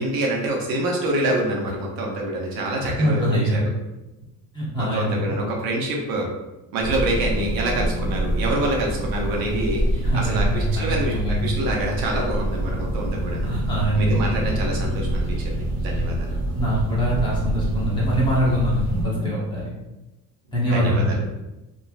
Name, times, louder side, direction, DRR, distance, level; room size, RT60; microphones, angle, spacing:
voice 1, 0.0-3.7 4.8-6.3 6.7-13.5 14.0-16.4 20.7-21.3, right 1 dB, 75° right, -1 dB, 0.7 m, -26 dB
voice 2, 2.8-3.6 4.5-5.4 10.0-11.6 13.4-14.2 16.5-19.7 20.5-21.2, equal, 15° left, -8 dB, 0.7 m, -23 dB
sound 1, 6.8-19.0, right 1 dB, 30° right, 0.9 m, -26 dB
3.0 x 2.4 x 2.3 m, 1.0 s
cardioid pair, 175°, 36 cm